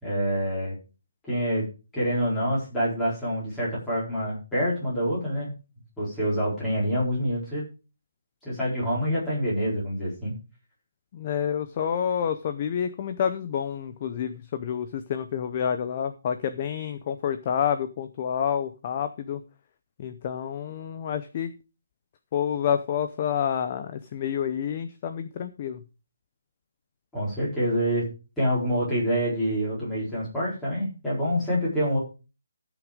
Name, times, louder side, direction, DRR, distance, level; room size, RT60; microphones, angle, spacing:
voice 1, 0.0-0.8 1.3-1.7 1.9-5.5 6.0-7.6 8.4-10.3 27.1-28.1 28.4-32.0, equal, 5° left, -8 dB, 4.2 m, -26 dB
voice 2, 11.1-19.4 20.0-21.5 22.3-25.8, left 8 dB, 20° left, 10 dB, 0.6 m, -28 dB
14.0 x 6.2 x 5.1 m, 0.32 s
hypercardioid pair, 180°, 0 cm